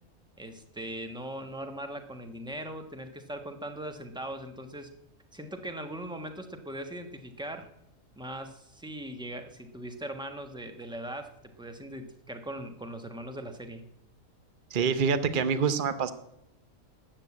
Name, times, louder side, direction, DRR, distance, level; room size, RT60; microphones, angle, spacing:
voice 1, 0.4-4.9 5.3-7.7 8.2-13.8, right 1 dB, 5° right, 6 dB, 1.2 m, -40 dB
voice 2, 14.7-16.1, right 6 dB, 45° right, 11 dB, 1.0 m, -26 dB
13.0 x 8.8 x 8.6 m, 0.83 s
omnidirectional pair, 1.4 m